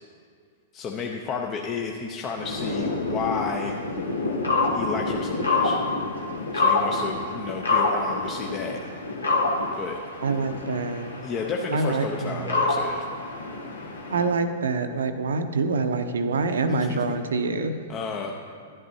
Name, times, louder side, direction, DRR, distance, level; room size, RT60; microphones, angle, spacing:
voice 1, 0.7-3.8 4.7-5.8 6.5-8.8 9.8-10.0 11.2-13.1 16.7-17.2 17.9-18.3, left 5 dB, 30° left, 1 dB, 0.6 m, -32 dB
sound 1, 2.4-14.3, left 3 dB, 80° left, 1.1 m, -27 dB
voice 2, 10.2-11.1 11.7-12.5 14.1-17.7, right 4 dB, 75° right, 8 dB, 0.6 m, -26 dB
11.0 x 10.5 x 2.7 m, 2.1 s
figure-of-eight pair, 105°, 0 cm